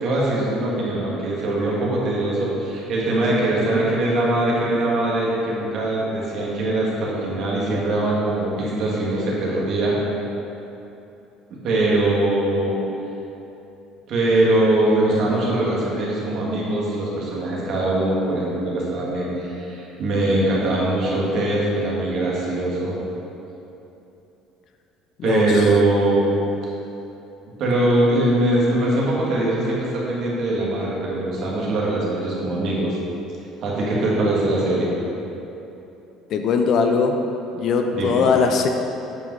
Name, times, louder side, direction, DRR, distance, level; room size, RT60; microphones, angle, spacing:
voice 1, 0.0-10.0 11.5-12.8 14.1-23.0 25.2-26.3 27.6-33.0 33.6-34.9 37.9-38.2, right 1 dB, 45° right, -5 dB, 1.9 m, -22 dB
voice 2, 25.2-25.7 36.3-37.2 37.5-38.7, left 5 dB, 40° left, 4 dB, 0.5 m, -20 dB
9.1 x 5.3 x 4.8 m, 3.0 s
cardioid pair, 170°, 0 cm